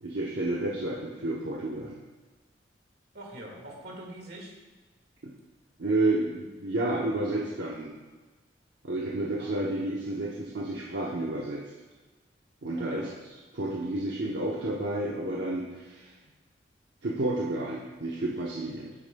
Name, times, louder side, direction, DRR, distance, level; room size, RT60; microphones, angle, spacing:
voice 1, 0.0-2.0 5.8-7.9 8.8-11.6 12.6-13.1 13.5-16.1 17.0-18.9, right 2 dB, 80° right, -4 dB, 0.8 m, -30 dB
voice 2, 3.1-4.5 9.4-9.7 12.7-13.1 16.2-16.3, right 1 dB, 60° right, -1 dB, 1.9 m, -44 dB
8.7 x 8.5 x 2.3 m, 1.3 s
head